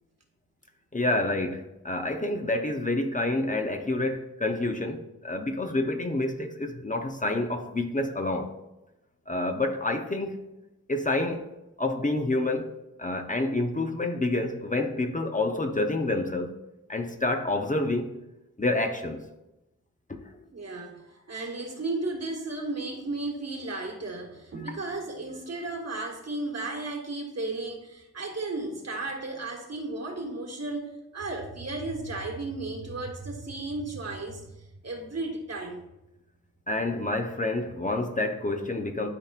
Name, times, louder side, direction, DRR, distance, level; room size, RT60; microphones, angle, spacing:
voice 1, 0.9-8.5 9.3-10.4 10.9-11.5 11.8-12.7 13.0-16.6 16.9-18.2 18.6-19.2 20.1-20.3 24.6-24.7 36.7-39.1, left 2 dB, 25° left, 0.7 m, -28 dB
voice 2, 20.5-35.8, right 2 dB, 55° right, 1.7 m, -34 dB
12.5 x 4.2 x 2.4 m
cardioid pair, 60°, 30 cm